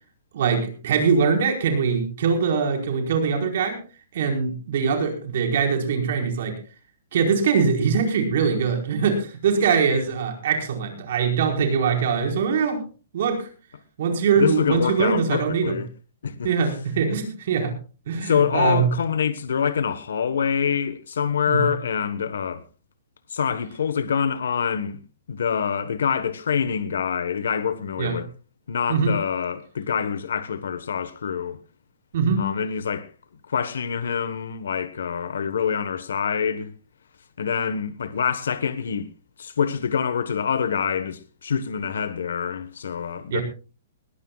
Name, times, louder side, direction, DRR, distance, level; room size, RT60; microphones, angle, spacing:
voice 1, 0.3-3.8 4.1-6.5 7.1-12.8 13.1-13.5 14.0-15.7 16.4-17.7 18.1-18.9 21.5-21.7 28.0-28.2 28.9-29.1 32.1-32.5 43.3-43.4, right 5 dB, 50° right, 4.7 m, -22 dB
voice 2, 14.3-15.9 16.2-16.5 18.2-22.6 23.3-25.0 25.3-28.3 28.7-31.6 32.4-33.1 33.5-36.7 37.4-39.1 39.4-43.4, left 7 dB, 90° left, 1.3 m, -25 dB
20.0 x 17.5 x 2.4 m
hypercardioid pair, 175°, 0 cm